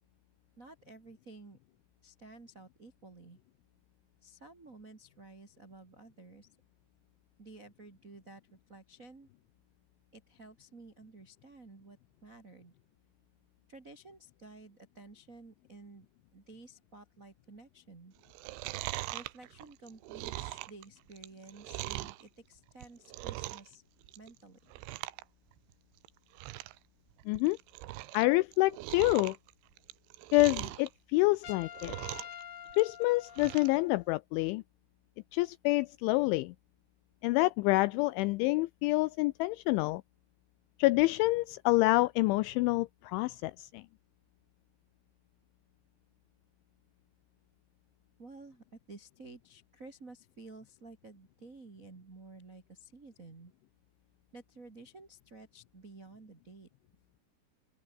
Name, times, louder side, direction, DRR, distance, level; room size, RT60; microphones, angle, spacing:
voice 1, 0.6-1.6 2.0-3.4 4.2-6.5 7.4-9.3 10.1-12.7 13.7-16.0 16.3-18.1 19.1-23.8 24.1-24.6 48.2-53.5 54.3-56.7, right 3 dB, 60° right, 0.8 m, -52 dB
Chewing mastication, 18.2-22.2 22.7-23.7 24.0-24.4 24.7-25.2 25.5-25.6 26.0-26.1 26.3-26.8 27.2-28.2 28.5-30.9 31.4-32.4 32.7-33.8 34.1-34.2, right 18 dB, 80° right, 3.2 m, -41 dB
voice 2, 27.3-27.6 28.1-29.4 30.3-31.9 32.8-34.6 35.3-36.5 37.2-40.0 40.8-43.8, left 21 dB, 85° left, 2.7 m, -27 dB
Trumpet, 31.4-34.1, left 10 dB, 55° left, 2.9 m, -47 dB
open air
omnidirectional pair, 5.9 m